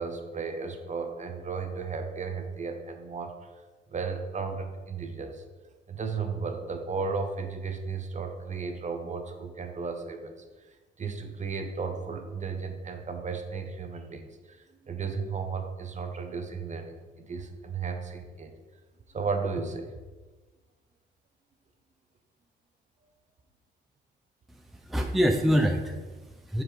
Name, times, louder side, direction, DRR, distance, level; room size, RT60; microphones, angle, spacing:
voice 1, 0.0-3.3 3.9-5.4 5.9-10.7 11.0-18.5 19.1-19.9, right 5 dB, 35° right, 5 dB, 0.9 m, -34 dB
voice 2, 24.5-26.6, equal, ahead, 4 dB, 0.6 m, -26 dB
5.7 x 4.7 x 5.0 m, 1.3 s
cardioid pair, 90°, 20 cm